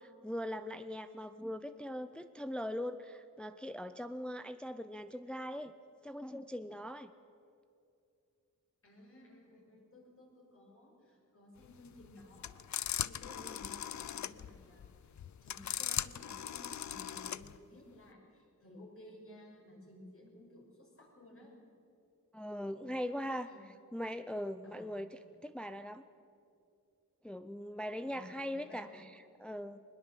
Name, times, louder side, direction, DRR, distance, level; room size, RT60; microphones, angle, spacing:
voice 1, 0.0-5.7 6.0-7.1 13.4-13.6 22.3-23.5 23.9-26.0 27.2-29.8, equal, 5° left, 10 dB, 0.5 m, -41 dB
voice 2, 8.8-21.6 23.4-23.7 24.6-24.9 28.0-29.0, left 1 dB, 40° left, 0 dB, 5.6 m, -56 dB
sound 1, 11.6-17.6, left 10 dB, 60° left, 0.5 m, -39 dB
22.0 x 20.5 x 7.5 m, 2.6 s
wide cardioid pair, 155°, 33 cm